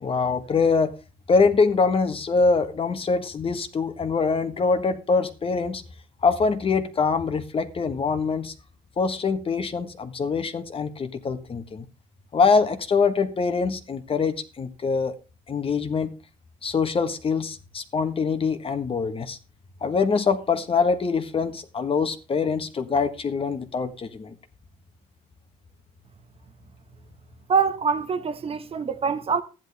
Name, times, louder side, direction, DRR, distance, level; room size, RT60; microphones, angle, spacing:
voice 1, 0.0-0.9 1.3-5.8 6.2-8.5 9.0-11.8 12.3-15.1 15.5-16.1 16.6-19.4 19.8-24.3, left 4 dB, 35° left, 1.5 m, -24 dB
voice 2, 27.5-29.4, right 6 dB, 35° right, 1.1 m, -24 dB
13.0 x 10.5 x 3.4 m
cardioid pair, 110°, 17 cm